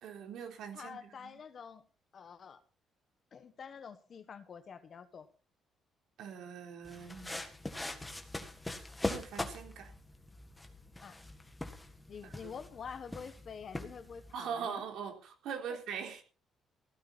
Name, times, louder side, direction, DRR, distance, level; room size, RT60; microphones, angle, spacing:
voice 1, 0.0-1.4 6.2-7.4 9.0-9.9 12.2-12.5 14.3-16.2, right 7 dB, 75° right, 3 dB, 3.7 m, -42 dB
voice 2, 0.7-1.8 2.1-2.6 3.3-5.3 11.0-11.2 12.1-14.8 15.7-15.8, left 6 dB, 40° left, 11 dB, 1.4 m, -47 dB
sound 1, 6.8-14.3, left 2 dB, 10° left, 1.7 m, -42 dB
15.5 x 13.5 x 4.3 m, 0.36 s
cardioid pair, 150°, 0 cm